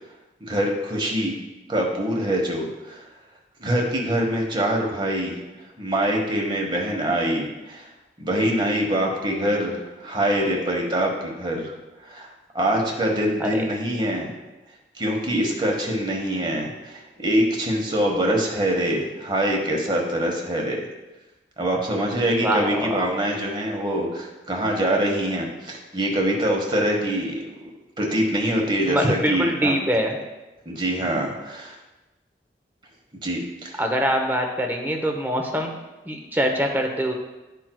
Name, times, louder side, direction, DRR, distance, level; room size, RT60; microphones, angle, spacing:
voice 1, 0.4-1.3 1.7-3.1 3.6-5.4 5.8-7.9 8.2-11.7 12.0-12.3 12.5-14.3 14.9-20.8 21.6-27.7 28.0-29.7 30.6-31.7 33.2-33.8, right 1 dB, 25° right, 0 dB, 1.1 m, -24 dB
voice 2, 22.4-23.0 28.8-30.2 33.8-35.8 36.1-37.1, equal, 10° right, 2 dB, 0.7 m, -24 dB
12.0 x 4.4 x 2.2 m, 1.1 s
head